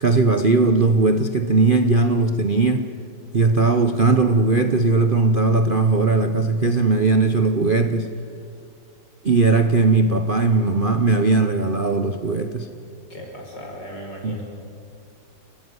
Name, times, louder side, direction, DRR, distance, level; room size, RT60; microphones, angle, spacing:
voice 1, 0.0-2.9 3.3-8.1 9.2-12.7 14.2-14.4, right 3 dB, 40° right, 0.7 m, -18 dB
voice 2, 13.1-14.4, equal, 65° left, 5.9 m, -36 dB
29.5 x 15.0 x 9.6 m
omnidirectional pair, 2.0 m